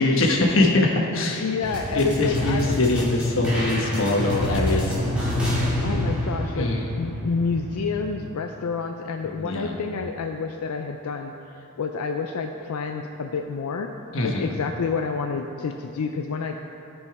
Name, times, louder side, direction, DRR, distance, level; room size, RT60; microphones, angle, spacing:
voice 1, 0.0-1.4 1.9-4.9 6.5-6.9 9.4-9.7 14.1-14.5, left 2 dB, 60° left, 0 dB, 1.2 m, -22 dB
voice 2, 1.3-2.8 5.8-13.9 14.2-16.6, left 5 dB, 90° left, 4 dB, 0.5 m, -29 dB
sound 1, 1.6-8.1, left 1 dB, 5° right, 2.3 m, -27 dB
14.0 x 5.4 x 4.7 m, 2.7 s
head